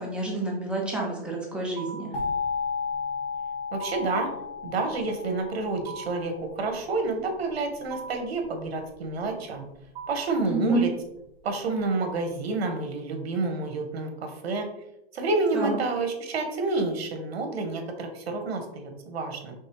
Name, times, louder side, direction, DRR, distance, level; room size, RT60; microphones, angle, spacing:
voice 1, 0.0-2.1 10.5-10.8 15.5-15.8, right 2 dB, 5° right, -3 dB, 0.8 m, -28 dB
sound 1, 1.8-2.2 3.8-4.3 5.9-6.3 7.9-8.4 9.9-10.4, right 6 dB, 50° right, 1.7 m, -40 dB
sound 2, 2.1-6.9, left 5 dB, 65° left, 1.8 m, -33 dB
voice 2, 3.7-4.3 4.6-9.7 10.1-10.9 11.4-14.7 15.1-19.5, right 3 dB, 70° right, 5 dB, 1.2 m, -29 dB
5.3 x 3.3 x 3.0 m, 0.85 s
hypercardioid pair, 145°, 32 cm